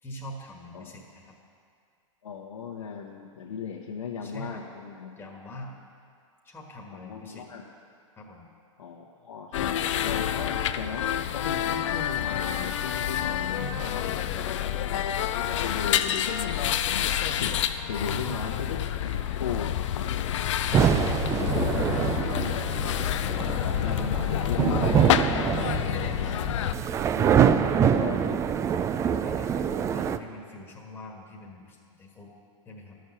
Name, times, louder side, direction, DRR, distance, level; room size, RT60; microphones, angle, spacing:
voice 1, 0.0-1.3 4.2-4.6 5.2-5.7 6.4-7.5 8.2-8.5 13.5-14.6 17.9-18.5 21.7-22.1 27.4-28.6 29.0-32.3 32.6-33.0, left 1 dB, 10° left, -1 dB, 1.5 m, -43 dB
voice 2, 2.2-5.1 6.9-7.6 8.8-11.1 11.3-14.1 14.9-15.3 15.6-17.1 17.4-19.7 19.9-20.3 21.4-22.8 23.2-26.7 27.1-28.4, left 6 dB, 80° left, -3 dB, 1.2 m, -37 dB
sound 1, 9.5-26.7, left 10 dB, 65° left, 0.5 m, -28 dB
sound 2, 20.7-30.2, right 8 dB, 20° right, 0.3 m, -25 dB
12.0 x 6.4 x 7.1 m, 2.3 s
hypercardioid pair, 115°, 17 cm